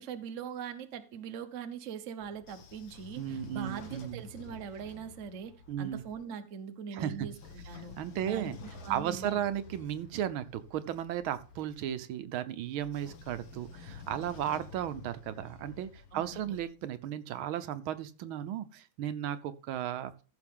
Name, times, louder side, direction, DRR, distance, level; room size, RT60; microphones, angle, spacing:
voice 1, 0.0-8.0 8.3-9.4 14.5-14.6 16.1-16.6, right 7 dB, 45° right, 1.1 m, -42 dB
Train / Sliding door, 2.2-6.2 7.1-11.9 12.8-16.6, left 4 dB, 70° left, 2.1 m, -50 dB
voice 2, 3.2-4.2 5.7-6.0 6.9-7.3 8.0-8.6 8.9-20.1, right 10 dB, 80° right, 1.6 m, -35 dB
14.5 x 6.7 x 3.6 m
omnidirectional pair, 2.2 m